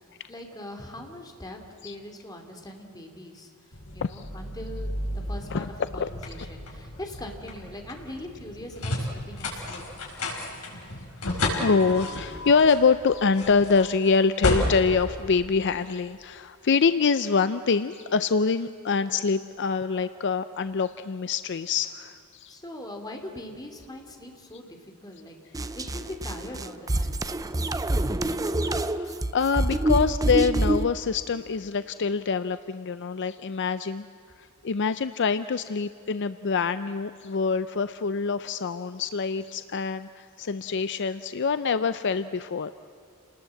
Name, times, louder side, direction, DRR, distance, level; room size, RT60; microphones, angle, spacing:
voice 1, 0.3-3.5 3.9-5.7 5.9-10.0 22.5-27.2, left 1 dB, 20° left, 3 dB, 2.7 m, -41 dB
sound 1, 3.7-16.1, left 1 dB, 80° left, 5.1 m, -33 dB
voice 2, 5.5-6.1 11.5-22.6 28.3-28.4 28.7-34.1 34.4-42.7, left 5 dB, 55° left, 12 dB, 0.5 m, -25 dB
sound 2, 25.5-30.9, right 1 dB, 15° right, 0.5 m, -26 dB
29.5 x 19.5 x 7.7 m, 2.5 s
head